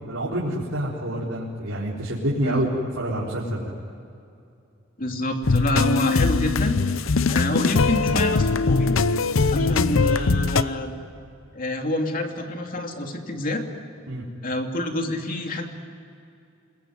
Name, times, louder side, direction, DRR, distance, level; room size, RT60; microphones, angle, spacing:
voice 1, 0.1-2.7 3.0-3.7 9.5-9.7 14.1-14.2, right 1 dB, 85° right, -6 dB, 4.2 m, -27 dB
voice 2, 5.0-6.7 7.3-9.0 9.5-10.9 11.5-13.6 14.4-15.7, left 1 dB, 45° left, 3 dB, 2.9 m, -27 dB
sound 1, 5.4-10.6, left 4 dB, 75° left, 0.8 m, -21 dB
27.0 x 21.5 x 9.5 m, 2.6 s
head